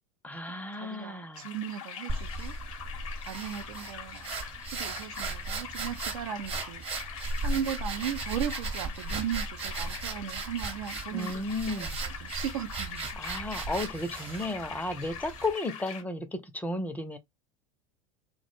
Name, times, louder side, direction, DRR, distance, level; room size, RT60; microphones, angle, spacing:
voice 1, 0.2-1.6 11.1-12.0 13.2-17.2, left 2 dB, 10° left, 0.4 m, -34 dB
voice 2, 0.8-2.6 3.2-4.3 4.7-6.8 7.4-13.2, right 10 dB, 75° right, 0.4 m, -37 dB
sound 1, 1.3-16.0, left 8 dB, 75° left, 0.6 m, -43 dB
sound 2, 2.1-15.5, right 3 dB, 35° right, 0.8 m, -37 dB
2.1 x 2.0 x 3.1 m
hypercardioid pair, 85°, 17 cm